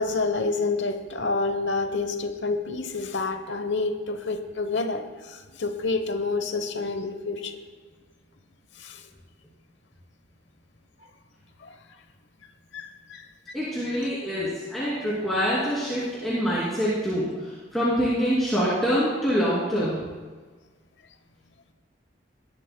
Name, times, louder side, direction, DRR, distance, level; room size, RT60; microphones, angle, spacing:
voice 1, 0.0-7.6 8.8-9.0 11.6-11.7 12.7-13.2 13.9-14.0, left 3 dB, 70° left, 7 dB, 1.0 m, -28 dB
voice 2, 13.5-20.0, equal, ahead, -10 dB, 2.8 m, -25 dB
19.5 x 11.5 x 2.2 m, 1.4 s
head